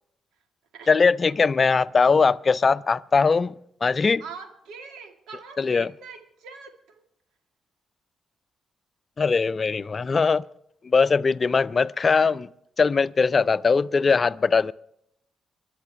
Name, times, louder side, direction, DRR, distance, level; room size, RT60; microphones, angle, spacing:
voice 1, 0.9-3.5 3.8-4.2 5.6-5.9 9.2-10.4 10.8-12.5 12.8-14.7, left 4 dB, 45° left, 0.5 m, -20 dB
voice 2, 4.2-7.0, right 5 dB, 75° right, 1.9 m, -43 dB
28.0 x 11.5 x 3.3 m
hypercardioid pair, 40°, 0 cm